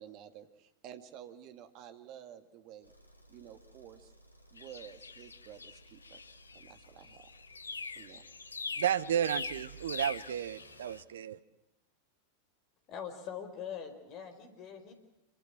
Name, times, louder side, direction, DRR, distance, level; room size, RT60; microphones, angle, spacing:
voice 1, 0.0-2.9 3.3-4.1 4.5-6.2 6.5-7.3 7.9-8.2, right 10 dB, 40° right, 2.2 m, -51 dB
sound 1, 2.8-11.0, right 2 dB, 90° right, 2.4 m, -58 dB
sound 2, 4.6-11.0, left 4 dB, 75° left, 1.0 m, -44 dB
voice 2, 8.8-11.4, right 9 dB, 60° right, 1.0 m, -32 dB
voice 3, 12.9-14.9, left 8 dB, 35° left, 4.7 m, -43 dB
26.5 x 24.0 x 6.0 m
figure-of-eight pair, 90°, 0 cm